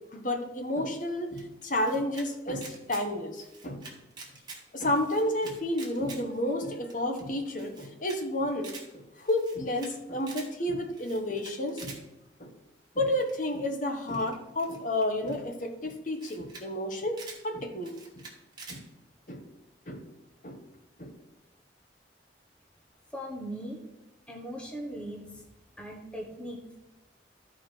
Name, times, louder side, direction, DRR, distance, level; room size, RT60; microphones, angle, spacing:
voice 1, 0.1-3.8 4.7-12.0 12.4-12.5 12.9-18.2 18.7-18.8 19.3-19.4 19.9-20.0 20.4-20.6 21.0-21.1, left 1 dB, 45° left, 4 dB, 1.2 m, -31 dB
Camera, 1.4-2.3 2.5-3.0 3.4-4.6 4.9-6.2 6.6-6.7 6.9-7.0 7.2-7.3 7.6-8.2 8.5-8.9 9.3-9.9 10.2-10.5 10.9-12.0 13.2-13.5 14.1-15.3 15.9-16.0 16.2-16.6 16.9-17.4 17.8-18.8, right 4 dB, 25° right, 1.7 m, -46 dB
voice 2, 23.1-23.8 24.3-25.5 25.8-26.8, equal, 5° left, 0 dB, 1.1 m, -39 dB
13.0 x 4.9 x 4.5 m, 0.99 s
head